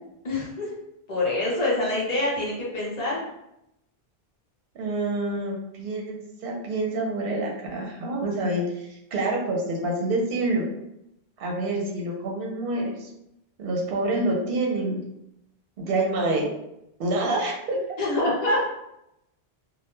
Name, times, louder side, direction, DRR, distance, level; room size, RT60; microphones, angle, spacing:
voice 1, 0.2-0.7 1.1-3.2 18.0-18.6, left 2 dB, 45° left, -5 dB, 0.8 m, -25 dB
voice 2, 4.7-10.7 11.4-13.1 13.6-15.0 15.8-16.5 17.0-17.8, right 2 dB, 65° right, 0 dB, 0.8 m, -27 dB
2.2 x 2.1 x 2.9 m, 0.83 s
omnidirectional pair, 1.0 m